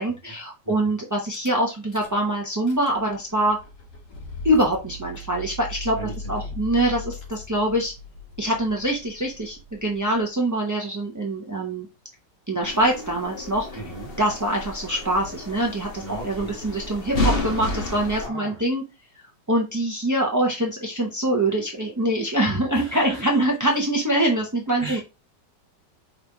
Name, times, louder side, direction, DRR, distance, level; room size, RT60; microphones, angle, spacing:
voice 1, 0.0-3.6 4.4-6.0 6.3-7.9 8.4-11.9 12.5-13.7 14.2-18.8 19.5-25.0, right 1 dB, 20° right, -1 dB, 0.6 m, -24 dB
Rattle / Car / Engine starting, 1.3-1.5 1.9-2.3 2.5-10.3, left 2 dB, 70° left, 2.3 m, -39 dB
voice 2, 6.0-6.5 13.7-14.1 16.0-16.5 18.2-18.6 22.7-23.3 24.8-25.0, right 2 dB, 15° left, -3 dB, 3.1 m, -37 dB
sound 1, 12.6-18.3, left 1 dB, 35° left, 1.5 m, -30 dB
5.2 x 3.8 x 4.7 m, 0.28 s
omnidirectional pair, 1.9 m